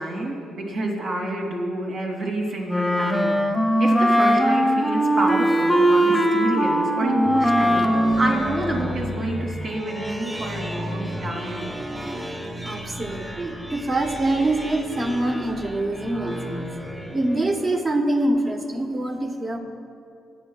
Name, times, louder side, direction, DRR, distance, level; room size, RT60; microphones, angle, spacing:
voice 1, 0.0-3.4 3.8-11.8, right 1 dB, 65° right, -2 dB, 3.0 m, -28 dB
Wind instrument woodwind instrument, 2.7-9.3, equal, 5° left, 1.0 m, -20 dB
sound 1, 7.0-17.8, equal, 10° right, 1.3 m, -33 dB
voice 2, 12.6-16.7 17.1-19.6, right 1 dB, 35° right, 3 dB, 1.3 m, -25 dB
23.0 x 9.3 x 2.4 m, 2.5 s
cardioid pair, 90°, 0 cm